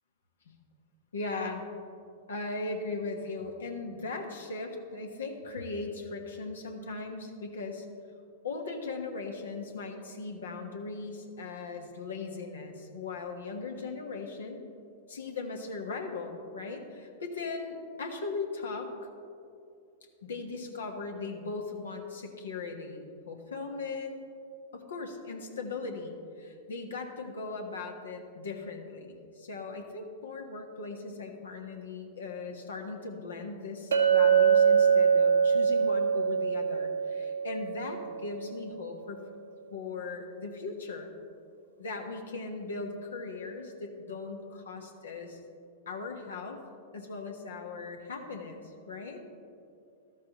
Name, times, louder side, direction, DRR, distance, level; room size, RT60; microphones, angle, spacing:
voice 1, 1.1-1.6 2.3-7.9 8.4-14.6 15.1-18.9 20.2-24.2 24.7-39.2 39.7-41.1 41.8-45.4 45.9-46.6 46.9-48.6 48.9-49.2, left 3 dB, 80° left, 3 dB, 1.3 m, -38 dB
Chink clink, 33.9-38.2, right 6 dB, 80° right, 1.0 m, -24 dB
13.5 x 12.5 x 3.0 m, 2.5 s
hypercardioid pair, 100°, 0 cm